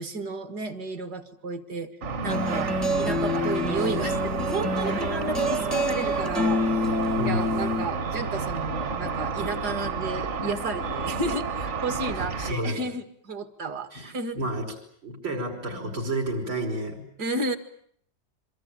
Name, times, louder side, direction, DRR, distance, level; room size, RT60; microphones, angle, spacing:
voice 1, 0.0-1.9 2.2-6.9 7.2-14.4 17.2-17.6, right 3 dB, 60° right, 9 dB, 2.4 m, -32 dB
Car / Traffic noise roadway noise / Engine, 2.0-12.5, right 4 dB, 40° right, 1.5 m, -31 dB
sound 1, 2.2-7.9, left 1 dB, ahead, 0.6 m, -27 dB
voice 2, 7.2-7.5 12.2-12.8 13.9-14.8 15.0-17.1, right 1 dB, 80° right, 1 dB, 5.9 m, -31 dB
26.0 x 24.0 x 8.8 m, 0.64 s
omnidirectional pair, 2.0 m